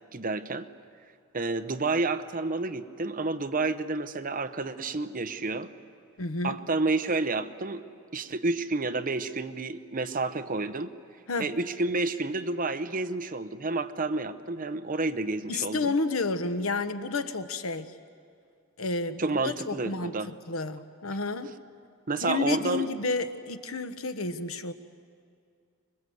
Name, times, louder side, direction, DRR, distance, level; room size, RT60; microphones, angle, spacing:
voice 1, 0.1-0.7 1.3-5.7 6.4-7.8 8.1-10.9 11.4-15.9 19.2-20.3 22.1-22.9, right 3 dB, 40° right, 9 dB, 0.9 m, -30 dB
voice 2, 6.2-6.6 11.3-11.5 15.5-17.9 18.8-21.5 22.2-24.7, left 3 dB, 75° left, 10 dB, 1.1 m, -31 dB
25.0 x 21.5 x 7.9 m, 2.2 s
head